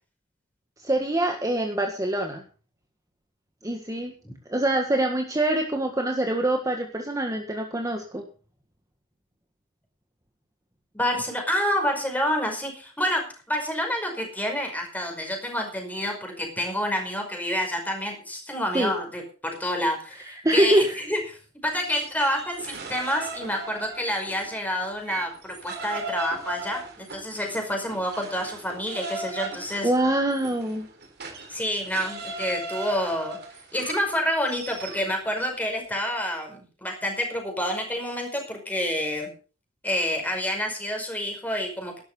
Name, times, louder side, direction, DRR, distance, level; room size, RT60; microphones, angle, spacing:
voice 1, 0.8-2.4 3.6-4.1 4.5-8.2 18.7-18.9 20.4-21.0 29.8-30.9, right 1 dB, 15° right, 3 dB, 1.6 m, -24 dB
voice 2, 10.9-21.2 21.6-29.9 31.5-33.4 33.7-39.3 39.8-42.0, equal, 10° left, 3 dB, 5.2 m, -28 dB
sound 1, 21.9-24.5 24.8-35.1, right 3 dB, 55° right, 3.6 m, -37 dB
12.5 x 11.5 x 5.4 m, 0.38 s
head